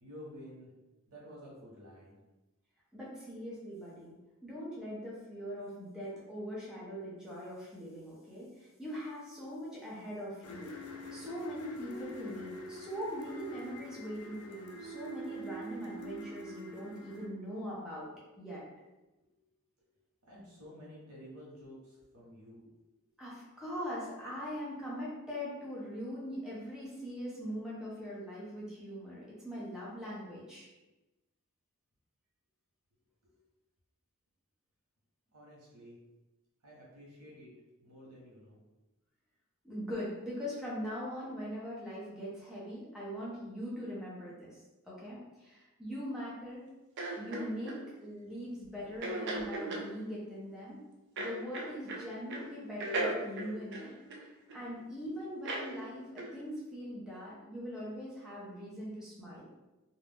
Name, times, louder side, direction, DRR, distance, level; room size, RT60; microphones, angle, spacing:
voice 1, 0.0-0.7 1.1-2.2 20.3-22.6 33.2-33.3 35.3-36.0 36.6-37.5 37.8-38.6 48.2-48.3, equal, 75° right, -5 dB, 1.1 m, -51 dB
voice 2, 2.9-10.8 11.1-18.1 18.4-18.6 23.2-30.7 39.6-46.7 47.2-50.8 51.2-53.9 54.5-59.5, equal, 5° right, -8 dB, 0.7 m, -41 dB
sound 1, 10.4-17.2, equal, 70° left, 0.5 m, -45 dB
sound 2, 47.0-47.8 49.0-49.9 51.2-52.0 52.3-52.5 52.8-54.6 55.4-55.7 56.2-56.3, right 2 dB, 50° right, 0.4 m, -36 dB
2.5 x 2.2 x 3.4 m, 1.1 s
head